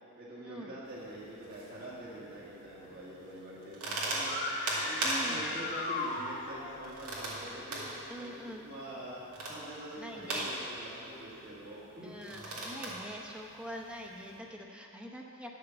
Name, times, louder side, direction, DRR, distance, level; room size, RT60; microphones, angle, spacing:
voice 1, 0.2-9.2 9.5-12.2, right 1 dB, 40° right, -8 dB, 1.8 m, -45 dB
sound 1, 0.8-14.4, right 1 dB, 90° right, 2.3 m, -40 dB
sound 2, 4.2-6.8, left 2 dB, 35° left, 1.2 m, -37 dB
voice 2, 5.0-5.6 8.1-8.7 10.0-10.5 12.0-15.5, equal, 5° right, -1 dB, 0.8 m, -44 dB
11.0 x 6.5 x 7.1 m, 2.8 s
head